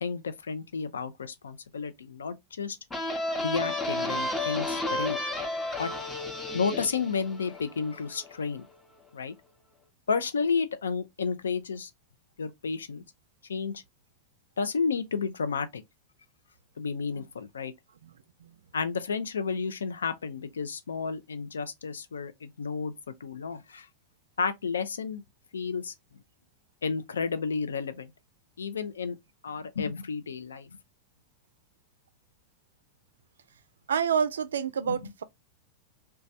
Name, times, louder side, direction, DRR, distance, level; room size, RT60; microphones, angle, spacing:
voice 1, 0.0-2.8 3.4-5.2 5.8-5.9 6.5-8.7 9.1-9.3 10.1-11.9 12.4-13.0 13.5-13.8 14.6-15.8 16.8-17.7 18.7-22.9 23.2-23.9 24.4-25.2 25.5-25.9 26.8-28.1 28.6-29.2 29.4-30.7 34.9-35.1, left 5 dB, 70° left, 0.4 m, -31 dB
sound 1, 2.9-8.4, left 2 dB, 15° left, 0.6 m, -32 dB
voice 2, 33.9-35.2, right 7 dB, 65° right, 0.3 m, -28 dB
3.0 x 2.2 x 2.5 m
figure-of-eight pair, 90°, 0 cm